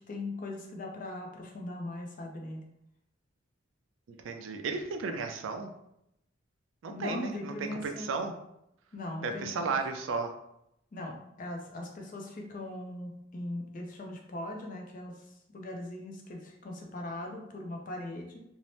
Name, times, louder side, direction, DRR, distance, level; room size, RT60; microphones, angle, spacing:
voice 1, 0.1-2.6 6.9-8.1 8.9-9.7 10.9-18.4, left 1 dB, 40° left, 1 dB, 0.4 m, -40 dB
voice 2, 4.2-5.7 6.8-8.3 9.2-10.3, right 4 dB, 70° right, 5 dB, 0.4 m, -34 dB
2.7 x 2.0 x 3.1 m, 0.81 s
head